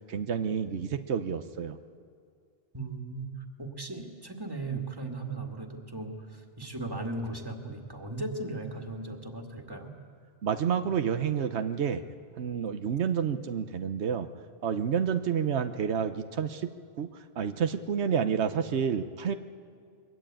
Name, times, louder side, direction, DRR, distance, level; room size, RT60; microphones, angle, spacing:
voice 1, 0.1-1.8 10.4-12.0 12.4-14.3 14.6-16.7 17.0-17.1 17.4-19.3, right 7 dB, 85° right, 9 dB, 1.1 m, -29 dB
voice 2, 2.7-3.3 3.6-9.9, right 2 dB, 20° right, 3 dB, 2.1 m, -37 dB
23.0 x 22.5 x 9.0 m, 2.2 s
omnidirectional pair, 1.1 m